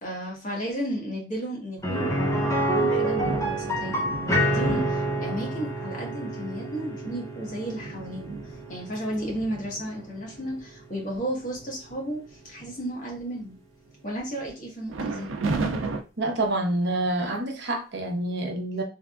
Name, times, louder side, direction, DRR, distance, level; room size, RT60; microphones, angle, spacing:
voice 1, 0.0-13.6 14.0-15.3, equal, 40° left, -2 dB, 1.4 m, -33 dB
sound 1, 1.8-11.6 11.9-12.0 14.4-14.5, right 1 dB, 15° left, 0.8 m, -28 dB
sound 2, 2.7-5.7 6.4-6.5 6.9-10.6 11.1-11.2 11.5-11.9 12.3-13.1 14.9-16.0, right 3 dB, 85° right, 0.5 m, -34 dB
voice 2, 16.2-18.8, right 1 dB, 60° right, 2 dB, 0.8 m, -27 dB
3.5 x 3.3 x 2.4 m, 0.31 s
head